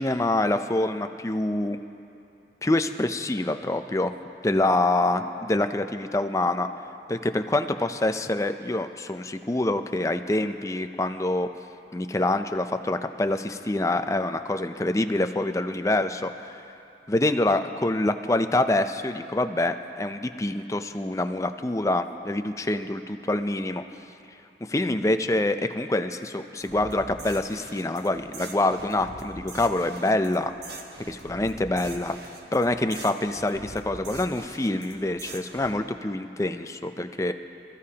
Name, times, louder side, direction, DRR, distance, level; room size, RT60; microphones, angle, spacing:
voice 1, 0.0-1.8 2.6-4.1 4.4-6.7 7.1-11.5 11.9-16.6 17.1-23.8 24.7-30.5 31.1-32.1 32.5-37.3, left 2 dB, 20° left, 8 dB, 0.5 m, -26 dB
sound 1, 26.6-35.8, right 3 dB, 65° right, 1.3 m, -43 dB
26.5 x 14.5 x 2.9 m, 2.8 s
head